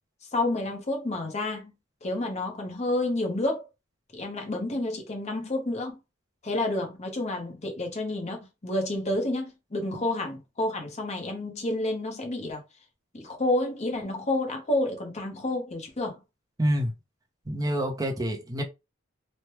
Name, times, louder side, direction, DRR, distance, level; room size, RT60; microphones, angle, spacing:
voice 1, 0.3-1.7 2.0-3.7 4.1-6.0 6.4-12.6 13.1-16.2, left 2 dB, 35° left, 0.8 m, -29 dB
voice 2, 16.6-16.9 17.5-18.6, equal, 20° right, 0.6 m, -27 dB
3.1 x 2.1 x 2.9 m
head